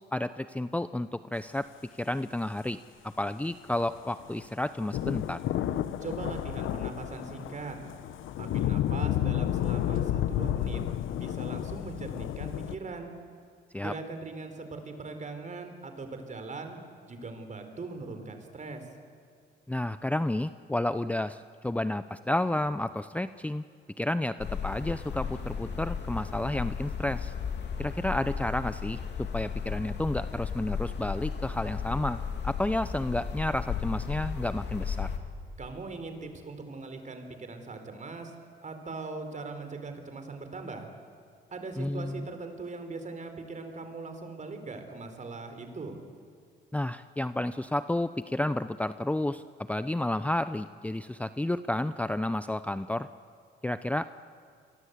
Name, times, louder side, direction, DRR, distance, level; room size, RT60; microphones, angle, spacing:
voice 1, 0.1-1.7 2.0-2.8 3.0-5.4 13.7-13.9 19.7-23.6 24.0-27.3 27.8-35.1 41.8-42.3 46.7-49.4 49.7-53.1 53.6-54.1, left 1 dB, 5° left, 12 dB, 0.6 m, -31 dB
sound 1, 3.7-12.8, left 12 dB, 80° left, 1.0 m, -31 dB
voice 2, 6.0-7.8 8.4-10.8 11.2-13.1 13.8-16.8 17.1-18.8 35.6-38.3 38.6-40.9 41.5-46.0, right 3 dB, 40° right, 7 dB, 4.2 m, -40 dB
sound 2, 24.4-35.2, left 6 dB, 60° left, 3.1 m, -35 dB
29.0 x 22.5 x 8.2 m, 2.3 s
cardioid pair, 90°, 20 cm